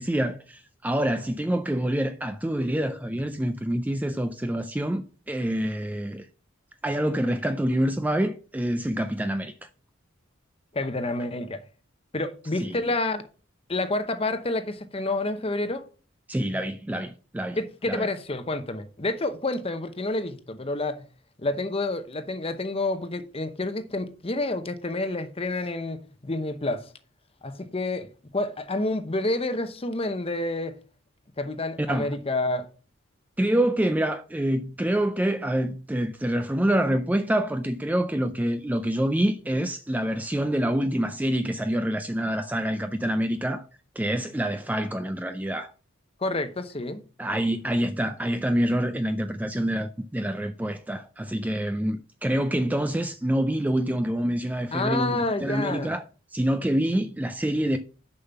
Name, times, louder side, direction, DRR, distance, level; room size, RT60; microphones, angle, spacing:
voice 1, 0.0-6.3 6.8-9.5 12.6-12.8 16.3-17.6 17.9-18.1 31.8-32.1 33.4-43.6 44.0-45.7 47.2-56.0 56.3-57.8, right 1 dB, 10° right, 0.4 m, -26 dB
voice 2, 10.7-11.6 12.1-13.2 13.7-15.8 17.6-21.1 21.4-26.9 27.4-30.8 31.4-32.7 46.2-47.0 54.7-55.9, left 2 dB, 30° left, 0.8 m, -29 dB
6.9 x 5.6 x 5.5 m
head